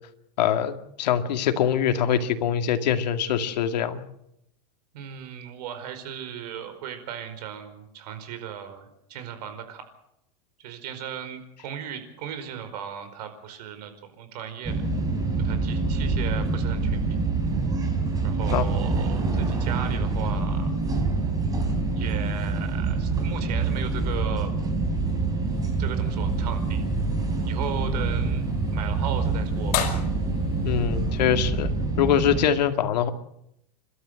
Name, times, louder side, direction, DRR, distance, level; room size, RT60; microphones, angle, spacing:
voice 1, 0.4-4.0 18.5-18.7 30.6-31.7 32.0-33.1, left 9 dB, 90° left, 7 dB, 2.2 m, -23 dB
voice 2, 4.9-9.8 10.6-14.8 15.4-17.2 18.2-20.7 21.9-24.5 25.8-26.8 27.5-28.4 28.7-29.9, right 9 dB, 75° right, 9 dB, 4.8 m, -36 dB
sound 1, 14.6-32.5, right 3 dB, 20° right, 4.3 m, -26 dB
sound 2, 25.5-32.0, left 10 dB, 70° left, 5.6 m, -37 dB
29.5 x 13.0 x 7.8 m, 0.81 s
supercardioid pair, 145°, 21 cm